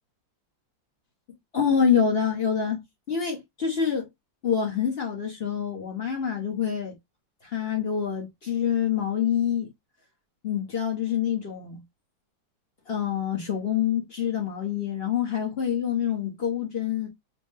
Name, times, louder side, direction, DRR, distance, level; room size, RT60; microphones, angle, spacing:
voice 1, 1.5-4.1 4.4-7.0 7.4-9.7 10.4-11.8 12.9-17.1, left 8 dB, 40° left, 1.0 m, -26 dB
4.4 x 2.2 x 3.2 m
omnidirectional pair, 2.0 m